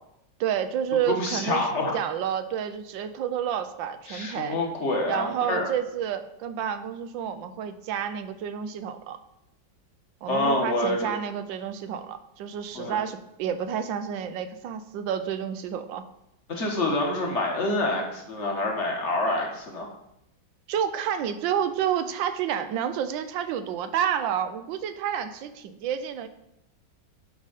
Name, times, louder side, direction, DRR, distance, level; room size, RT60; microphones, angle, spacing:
voice 1, 0.4-1.6 1.9-4.6 5.1-9.2 10.2-16.0 20.7-26.3, right 9 dB, 90° right, 10 dB, 1.4 m, -29 dB
voice 2, 1.1-2.0 4.1-5.7 10.3-11.1 12.7-13.0 16.5-19.9, left 2 dB, 40° left, 0 dB, 1.6 m, -27 dB
10.5 x 4.9 x 4.1 m, 0.84 s
omnidirectional pair, 2.0 m